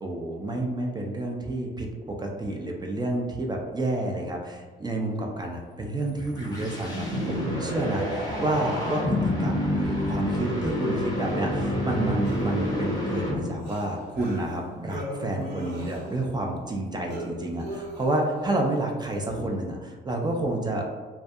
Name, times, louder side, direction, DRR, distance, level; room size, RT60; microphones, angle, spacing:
voice 1, 0.0-20.9, right 1 dB, 20° right, 0 dB, 0.4 m, -29 dB
sound 1, 6.0-13.7, left 1 dB, 20° left, 0.6 m, -28 dB
sound 2, 12.2-16.4 16.7-18.6 19.1-19.6, equal, 60° right, 0.7 m, -38 dB
2.3 x 2.2 x 2.6 m, 1.4 s
cardioid pair, 90°, 20 cm